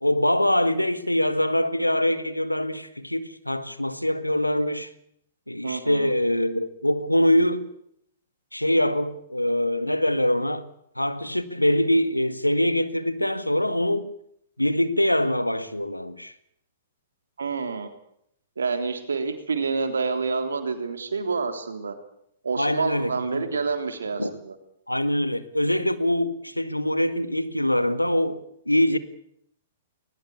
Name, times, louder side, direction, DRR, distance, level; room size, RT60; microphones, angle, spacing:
voice 1, 0.0-4.9 5.5-7.7 8.5-10.7 11.0-14.1 14.6-16.3 22.6-23.4 24.2-24.3 24.9-29.0, left 1 dB, 85° left, 1.8 m, -24 dB
voice 2, 5.6-6.1 17.4-17.9 18.6-22.0 22.4-24.6, right 4 dB, 70° right, 3.5 m, -28 dB
21.0 x 20.0 x 8.5 m
figure-of-eight pair, 110°, 0 cm